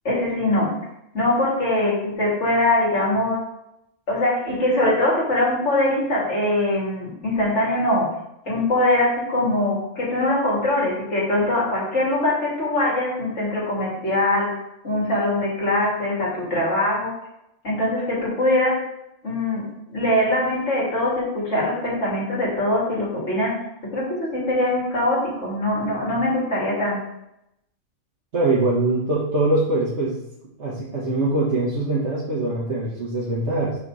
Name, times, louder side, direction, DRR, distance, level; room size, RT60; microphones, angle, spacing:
voice 1, 0.0-0.7 1.1-3.4 4.1-8.1 8.5-14.6 14.8-17.2 17.6-18.8 19.2-23.5 23.8-27.0, left 1 dB, 65° left, -6 dB, 2.9 m, -22 dB
voice 2, 28.3-30.2 30.6-33.8, right 2 dB, 60° right, -6 dB, 1.5 m, -23 dB
5.7 x 4.1 x 6.2 m, 0.84 s
omnidirectional pair, 1.3 m